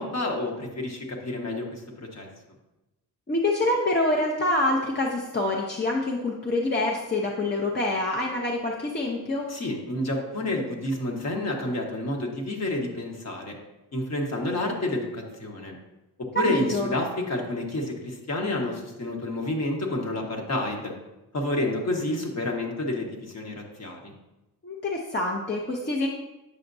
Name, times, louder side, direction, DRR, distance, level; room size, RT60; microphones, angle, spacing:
voice 1, 0.0-1.8 2.1-2.3 9.5-13.5 13.9-15.7 16.3-20.9 21.3-24.1, left 1 dB, 45° left, 1 dB, 1.3 m, -29 dB
voice 2, 3.3-9.5 16.5-16.9 24.6-26.1, left 2 dB, 30° left, -2 dB, 0.7 m, -26 dB
8.5 x 5.7 x 2.6 m, 1.0 s
cardioid pair, 100°, 37 cm